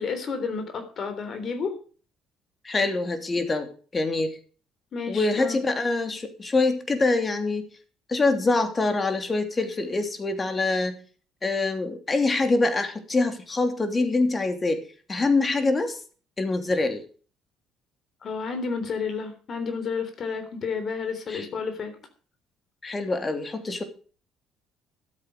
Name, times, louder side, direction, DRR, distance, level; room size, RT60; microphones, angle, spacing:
voice 1, 0.0-1.8 4.9-5.6 18.2-22.0, left 5 dB, 50° left, 8 dB, 3.5 m, -31 dB
voice 2, 2.6-4.4 5.1-7.7 8.1-11.0 11.4-14.8 15.1-16.0 16.4-17.0 21.3-21.5 22.8-23.8, left 3 dB, 30° left, 7 dB, 3.0 m, -25 dB
12.5 x 8.4 x 6.6 m, 0.40 s
hypercardioid pair, 65°, 0 cm